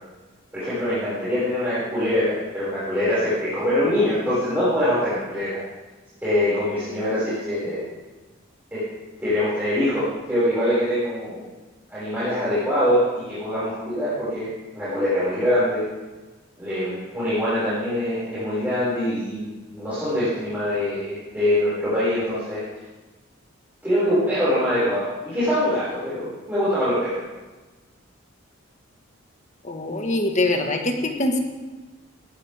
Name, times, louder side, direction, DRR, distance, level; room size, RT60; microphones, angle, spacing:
voice 1, 0.5-5.6 6.2-7.9 8.7-8.8 9.2-11.4 11.9-15.9 16.6-22.6 23.8-27.2, left 1 dB, 10° right, -12 dB, 5.9 m, -24 dB
voice 2, 29.6-31.4, left 2 dB, 35° left, 3 dB, 1.7 m, -23 dB
19.5 x 15.0 x 3.6 m, 1.2 s
head